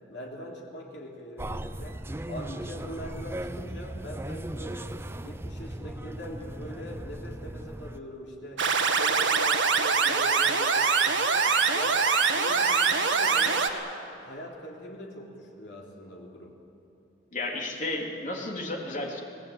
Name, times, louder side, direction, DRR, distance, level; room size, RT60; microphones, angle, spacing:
voice 1, 0.1-4.9 5.2-8.7 9.0-11.5 11.7-13.7 14.1-16.5, equal, 70° left, -1 dB, 3.8 m, -42 dB
sound 1, 1.4-8.0, right 1 dB, 15° right, 0.6 m, -37 dB
sound 2, 8.6-13.7, right 5 dB, 85° right, 1.7 m, -24 dB
voice 2, 17.3-19.2, left 2 dB, 45° left, 0 dB, 3.4 m, -32 dB
26.0 x 18.5 x 8.8 m, 2.8 s
head